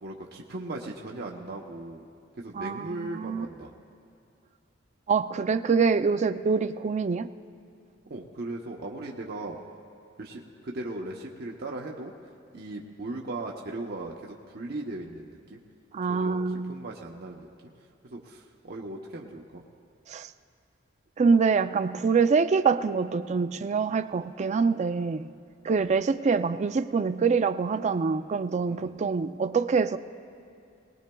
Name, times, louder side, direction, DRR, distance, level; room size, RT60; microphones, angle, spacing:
voice 1, 0.0-2.1 2.4-3.7 8.1-9.6 10.2-12.1 12.5-15.6 16.1-17.7 18.1-19.6 25.7-25.9 28.7-29.0, right 2 dB, 55° right, -1 dB, 0.8 m, -38 dB
voice 2, 2.5-3.5 5.1-7.3 15.9-16.7 20.1-20.3 21.2-25.3 25.6-30.0, right 5 dB, 35° right, 11 dB, 0.4 m, -25 dB
21.0 x 19.5 x 2.3 m, 2.5 s
head